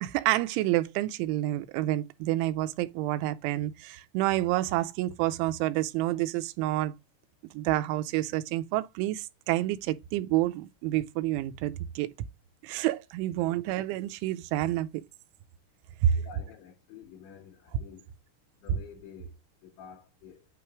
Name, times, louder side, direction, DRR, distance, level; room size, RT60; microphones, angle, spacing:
voice 1, 0.0-6.9 7.5-12.1 12.6-15.0 16.0-16.2, right 14 dB, 85° right, 3.0 m, -28 dB
voice 2, 16.1-18.1 18.6-20.5, left 7 dB, 80° left, 5.3 m, -50 dB
9.3 x 3.1 x 4.6 m
omnidirectional pair, 5.4 m